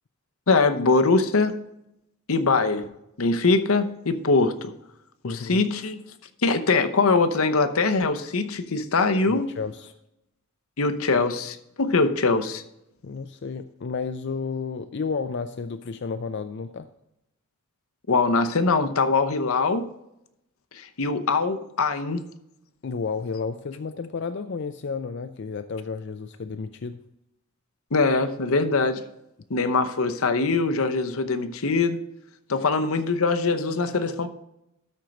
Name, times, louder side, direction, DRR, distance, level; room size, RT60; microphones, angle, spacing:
voice 1, 0.5-1.6 2.3-2.9 3.2-4.7 5.2-6.0 6.4-9.5 10.8-12.6 18.1-19.9 20.7-22.2 27.9-29.0 29.5-32.0 32.5-34.3, left 3 dB, 80° left, 8 dB, 0.9 m, -22 dB
voice 2, 5.2-5.6 9.3-9.9 13.0-16.9 22.8-27.0, left 5 dB, 55° left, 9 dB, 0.4 m, -32 dB
13.0 x 4.5 x 5.2 m, 0.84 s
head